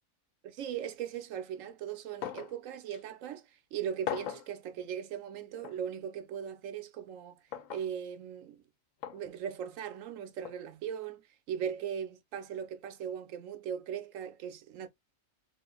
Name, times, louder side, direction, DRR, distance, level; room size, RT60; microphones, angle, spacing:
voice 1, 0.4-7.4 7.7-8.6 9.1-11.2 11.5-14.9, right 8 dB, 75° right, 1.0 m, -39 dB
sound 1, 2.2-2.6 2.9-3.0 4.1-4.5 5.6-5.8 7.5-7.9 9.0-9.2 10.4-10.6, left 10 dB, 70° left, 0.9 m, -38 dB
3.7 x 3.7 x 2.3 m
omnidirectional pair, 1.5 m